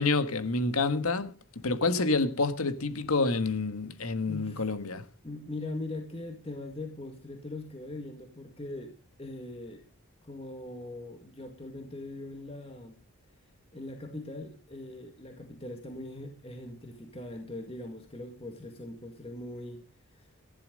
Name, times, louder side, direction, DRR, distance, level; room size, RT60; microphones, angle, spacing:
voice 1, 0.0-1.3 1.6-5.0, left 3 dB, 80° left, 1.6 m, -28 dB
voice 2, 4.3-4.7 5.2-9.8 10.2-13.0 13.7-19.8 20.1-20.3, left 2 dB, 25° left, 2.0 m, -41 dB
15.0 x 11.0 x 5.3 m
head